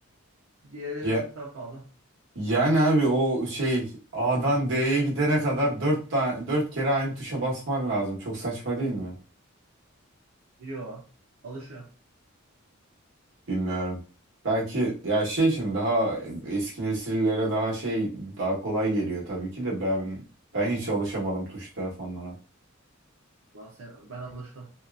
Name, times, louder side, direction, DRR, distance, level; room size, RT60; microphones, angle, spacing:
voice 1, 0.6-1.9 10.6-11.1 11.4-11.9 23.5-24.7, right 1 dB, 85° right, 0.6 m, -39 dB
voice 2, 2.3-3.9 4.1-9.1 13.5-14.0 14.4-20.2 20.5-22.3, right 1 dB, 65° right, 1.1 m, -26 dB
2.7 x 2.3 x 2.3 m
head